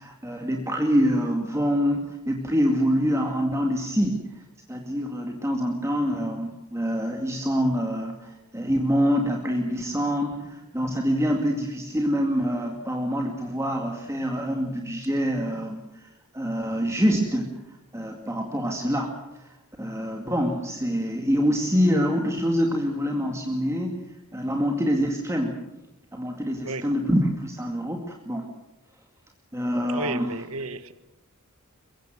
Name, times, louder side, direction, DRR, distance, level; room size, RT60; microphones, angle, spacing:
voice 1, 0.0-4.4 4.7-16.1 16.3-25.5 26.1-28.5 29.5-30.3, equal, 15° right, 2.2 m, -26 dB
voice 2, 26.6-27.0 29.9-30.9, right 2 dB, 70° right, 1.8 m, -33 dB
24.5 x 22.0 x 7.9 m
head